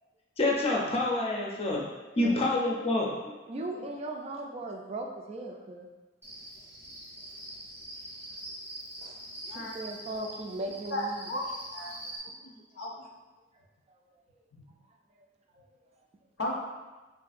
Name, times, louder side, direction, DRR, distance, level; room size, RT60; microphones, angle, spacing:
voice 1, 0.4-1.8 2.2-3.1, left 2 dB, 35° left, -3 dB, 0.6 m, -27 dB
voice 2, 2.2-2.5 3.5-5.9 9.0-9.2 9.5-11.3 15.6-15.7, right 2 dB, 35° right, 1 dB, 0.3 m, -38 dB
Cricket, 6.2-12.2, right 1 dB, 15° right, 0.7 m, -44 dB
voice 3, 10.9-11.4 11.7-11.9 12.2-13.1 16.4-16.6, left 1 dB, 75° left, -3 dB, 0.7 m, -35 dB
3.6 x 2.6 x 2.4 m, 1.2 s
head